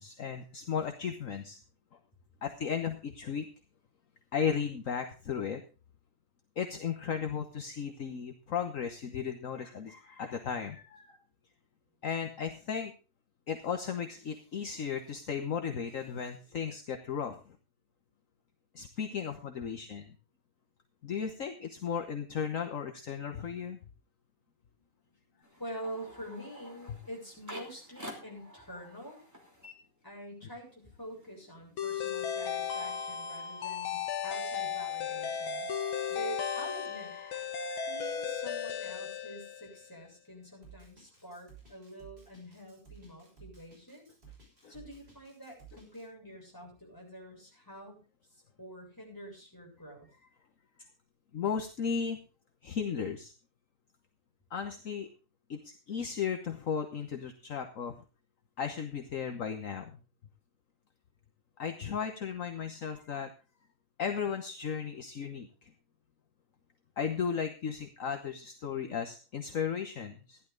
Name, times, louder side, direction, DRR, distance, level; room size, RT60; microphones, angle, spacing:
voice 1, 0.0-1.6 2.4-3.5 4.3-5.6 6.6-11.2 12.0-12.9 13.5-17.6 18.7-20.2 21.0-23.8 37.2-37.9 44.6-44.7 51.3-52.2 52.6-53.3 54.5-55.1 55.5-58.0 58.6-60.0 61.6-63.3 64.0-65.7 67.0-70.4, left 7 dB, 50° left, 6 dB, 1.1 m, -35 dB
voice 2, 25.3-29.2 30.0-35.7 36.1-37.1 37.9-44.1 44.7-48.0 48.3-50.1, right 1 dB, 10° left, -2 dB, 7.1 m, -46 dB
sound 1, 25.4-30.5 30.8-32.4, equal, 5° right, 3.1 m, -50 dB
sound 2, 31.8-39.9, left 7 dB, 70° left, 1.9 m, -35 dB
Drum kit, 40.6-46.0, right 6 dB, 25° right, 7.0 m, -55 dB
15.5 x 11.5 x 3.9 m, 0.33 s
omnidirectional pair, 2.4 m